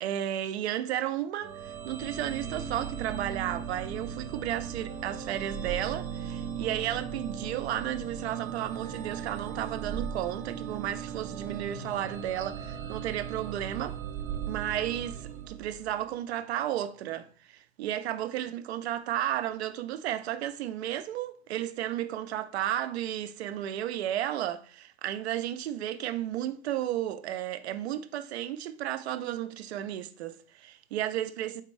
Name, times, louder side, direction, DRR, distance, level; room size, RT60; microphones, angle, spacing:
voice 1, 0.0-14.0 14.5-31.6, right 12 dB, 70° right, 0.6 m, -33 dB
sound 1, 1.4-16.1, right 7 dB, 25° right, 0.6 m, -38 dB
4.3 x 3.7 x 3.1 m
hypercardioid pair, 100°, 34 cm